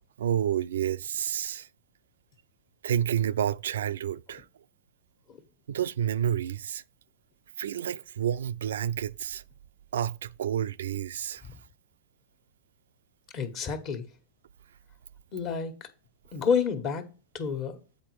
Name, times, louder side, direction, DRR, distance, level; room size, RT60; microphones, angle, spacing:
voice 1, 0.2-1.7 2.8-4.4 5.7-6.8 7.6-9.4 9.9-11.4, right 10 dB, 80° right, 0.3 m, -29 dB
voice 2, 13.3-14.1 15.3-15.9 16.3-17.1 17.3-17.8, left 6 dB, 40° left, 1.4 m, -29 dB
7.6 x 4.3 x 4.8 m
hypercardioid pair, 120°, 0 cm